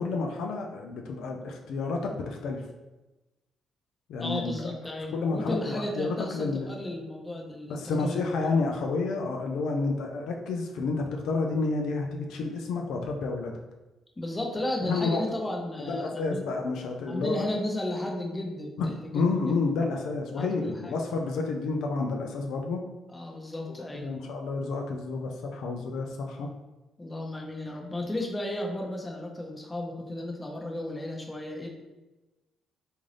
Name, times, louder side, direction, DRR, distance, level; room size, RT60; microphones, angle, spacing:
voice 1, 0.0-2.6 4.1-4.7 5.1-6.7 7.7-13.5 14.8-15.2 15.8-17.4 18.8-18.9 19.1-22.8 23.7-26.5, left 3 dB, 80° left, 2 dB, 0.4 m, -30 dB
voice 2, 4.2-8.2 14.2-16.4 17.1-19.6 20.3-20.9 23.1-24.1 27.0-31.7, left 1 dB, 20° left, 0 dB, 0.7 m, -34 dB
3.7 x 2.6 x 3.2 m, 1.1 s
cardioid pair, 90°, 0 cm